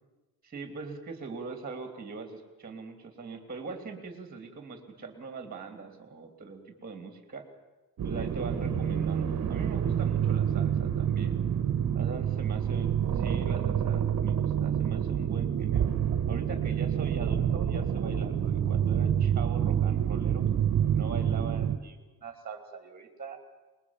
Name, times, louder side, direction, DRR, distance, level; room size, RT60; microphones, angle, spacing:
voice 1, 0.4-7.4 8.0-11.4 11.9-15.9 16.3-20.4 20.9-23.4, right 4 dB, 25° right, 6 dB, 2.8 m, -42 dB
sound 1, 8.0-21.8, right 9 dB, 50° right, 1.4 m, -27 dB
26.0 x 21.0 x 7.2 m, 1.2 s
cardioid pair, 175°, 38 cm